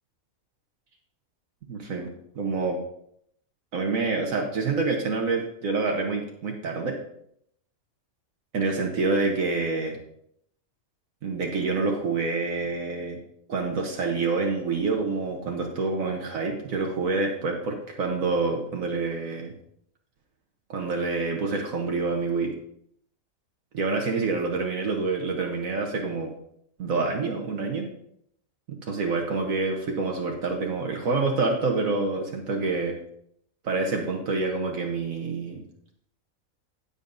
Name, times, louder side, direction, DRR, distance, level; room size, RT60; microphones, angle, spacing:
voice 1, 1.6-2.8 3.7-7.0 8.5-10.0 11.2-13.2 13.5-19.5 20.7-22.5 23.7-26.3 26.8-27.9 28.9-33.0 33.6-35.6, right 3 dB, 70° right, 1 dB, 1.5 m, -27 dB
17.0 x 7.0 x 2.6 m, 0.73 s
omnidirectional pair, 1.5 m